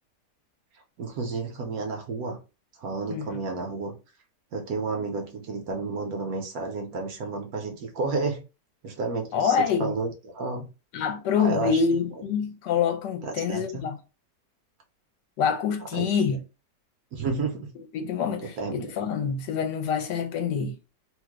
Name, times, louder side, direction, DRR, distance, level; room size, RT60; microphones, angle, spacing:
voice 1, 1.0-2.4 2.8-3.9 4.5-8.4 8.8-10.7 11.4-11.8 13.2-13.9 15.9-16.4 17.1-17.7 18.4-18.9, right 3 dB, 70° right, 1.0 m, -31 dB
voice 2, 9.3-9.9 10.9-14.0 15.4-16.4 17.9-20.7, left 6 dB, 80° left, 1.2 m, -26 dB
3.0 x 2.0 x 3.4 m
omnidirectional pair, 1.9 m